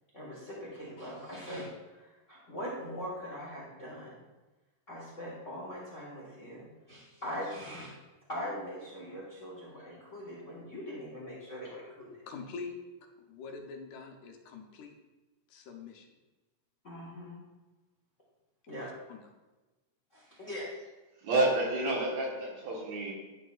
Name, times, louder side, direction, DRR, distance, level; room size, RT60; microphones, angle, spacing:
voice 1, 0.1-4.2 4.9-7.9 8.3-12.1 16.8-17.4 18.7-18.9 20.1-20.6, equal, 45° left, -5 dB, 1.0 m, -41 dB
voice 2, 12.3-12.8 13.3-15.0 15.5-16.1 18.8-19.2, left 4 dB, 85° left, 3 dB, 2.4 m, -44 dB
voice 3, 21.2-23.1, right 2 dB, 65° right, -3 dB, 2.6 m, -29 dB
11.0 x 6.3 x 2.4 m, 1.1 s
omnidirectional pair, 3.4 m